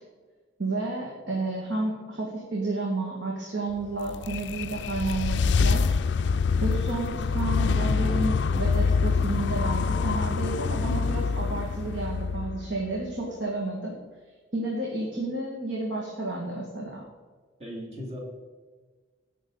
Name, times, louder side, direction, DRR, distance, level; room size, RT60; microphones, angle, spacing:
voice 1, 0.6-6.0 6.6-13.9 14.5-17.0, right 2 dB, 70° right, -2 dB, 1.9 m, -31 dB
sound 1, 3.8-13.1, left 5 dB, 60° left, 0.3 m, -26 dB
voice 2, 17.6-18.2, equal, 35° right, -3 dB, 2.7 m, -37 dB
16.5 x 6.4 x 3.9 m, 1.4 s
head